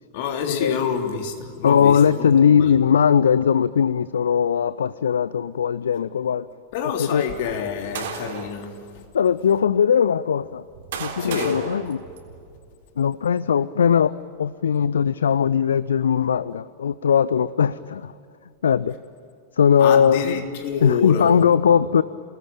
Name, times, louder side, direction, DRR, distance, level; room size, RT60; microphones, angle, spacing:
voice 1, 0.1-2.8 6.7-8.7 11.2-11.6 19.8-21.3, left 7 dB, 50° left, 4 dB, 3.5 m, -27 dB
voice 2, 1.6-6.4 7.0-7.2 9.1-10.6 11.0-12.0 13.0-14.1 14.4-18.1 18.6-18.9 19.6-20.4 20.8-22.0, left 7 dB, 65° left, 19 dB, 0.5 m, -19 dB
sound 1, 7.4-8.6 9.4-9.5 10.4-12.7, right 7 dB, 60° right, 3.7 m, -35 dB
29.5 x 20.0 x 8.9 m, 2.4 s
figure-of-eight pair, 90°, 0 cm